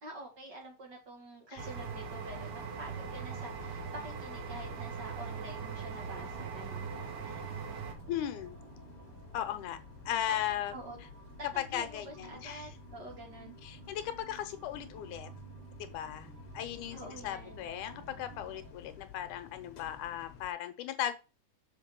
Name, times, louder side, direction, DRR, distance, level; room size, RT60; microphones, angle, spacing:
voice 1, 0.0-6.9 10.3-10.4 10.7-11.0 11.4-13.5 16.9-17.7, right 1 dB, 40° right, 0 dB, 2.1 m, -47 dB
sound 1, 1.6-20.5, left 8 dB, 60° left, 1.9 m, -53 dB
sound 2, 1.6-7.9, right 6 dB, 85° right, 2.9 m, -41 dB
sound 3, 2.3-18.7, right 6 dB, 60° right, 1.7 m, -52 dB
voice 2, 8.1-8.6 9.3-9.8 10.1-10.7 11.6-12.7 13.6-15.3 15.7-21.1, left 11 dB, 80° left, 10 dB, 2.3 m, -37 dB
6.0 x 5.1 x 6.8 m, 0.30 s
omnidirectional pair, 3.6 m